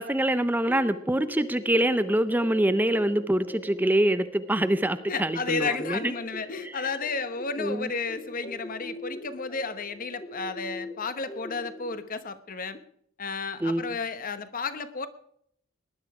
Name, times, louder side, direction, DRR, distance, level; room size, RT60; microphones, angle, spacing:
voice 1, 0.0-6.1 7.6-7.9 13.6-13.9, right 1 dB, 10° right, 12 dB, 0.5 m, -25 dB
sound 1, 0.7-11.9, left 1 dB, 25° left, 1.6 m, -42 dB
voice 2, 5.1-12.8 13.2-15.1, left 4 dB, 40° left, 12 dB, 1.0 m, -32 dB
19.0 x 11.0 x 4.8 m, 0.68 s
head